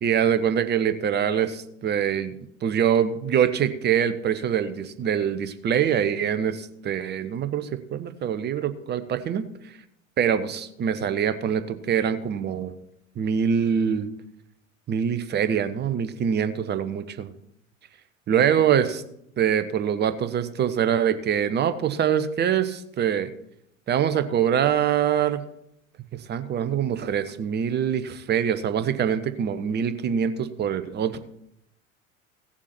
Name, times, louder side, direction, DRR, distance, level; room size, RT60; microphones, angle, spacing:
voice 1, 0.0-2.3 2.6-9.4 10.2-12.7 13.2-14.1 14.9-17.3 18.3-19.0 19.4-23.3 23.9-25.4 26.3-31.2, right 8 dB, 25° right, 11 dB, 0.9 m, -24 dB
16.0 x 7.2 x 4.4 m, 0.76 s
figure-of-eight pair, 80°, 41 cm